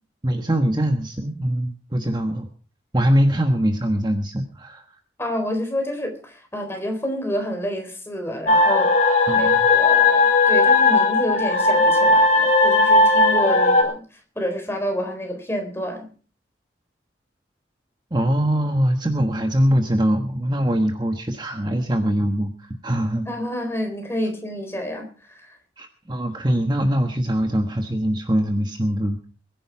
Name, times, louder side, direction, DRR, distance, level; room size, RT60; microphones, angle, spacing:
voice 1, 0.2-2.5 2.9-4.8 9.3-9.7 18.1-23.2 25.8-29.3, equal, 25° right, 5 dB, 1.3 m, -22 dB
voice 2, 5.2-16.1 23.3-25.6, equal, 15° left, 3 dB, 3.9 m, -29 dB
sound 1, 8.5-13.8, left 3 dB, 40° left, 4.2 m, -16 dB
22.5 x 10.5 x 4.7 m, 0.40 s
head